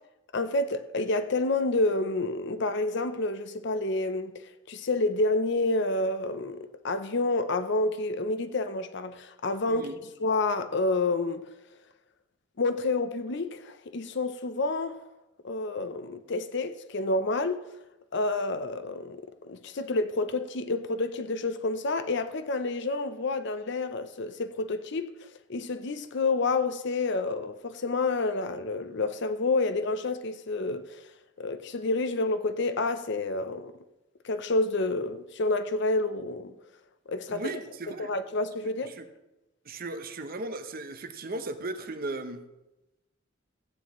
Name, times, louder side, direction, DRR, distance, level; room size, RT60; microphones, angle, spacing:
voice 1, 0.3-4.3 4.7-9.9 10.2-11.4 12.6-15.0 15.4-17.6 18.1-25.1 25.5-31.0 31.4-33.7 34.2-36.5 37.1-37.5 38.0-38.9, left 2 dB, 60° left, 0.6 m, -29 dB
voice 2, 9.7-10.0 37.3-38.1 38.9-39.1 39.6-42.5, right 2 dB, 50° right, 0.8 m, -36 dB
15.0 x 9.2 x 3.1 m
head